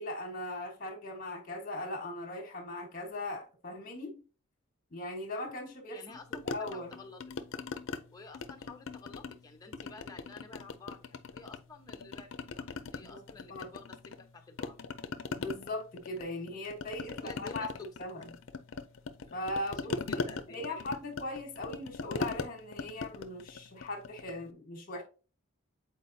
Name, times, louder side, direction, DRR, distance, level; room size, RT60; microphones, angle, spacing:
voice 1, 0.0-4.2 4.9-6.2 6.4-6.9 13.1-13.2 13.5-13.7 15.4-17.7 18.0-18.3 19.3-25.0, left 1 dB, 40° left, 1.4 m, -39 dB
voice 2, 5.9-7.2 8.1-14.0 14.3-14.8 16.9-17.9 19.3-20.8, left 3 dB, 15° left, 0.9 m, -51 dB
sound 1, 6.3-8.0 8.3-9.4 9.7-11.6 11.9-14.3 14.6-24.4, left 4 dB, 60° left, 0.5 m, -40 dB
8.0 x 4.4 x 2.7 m
head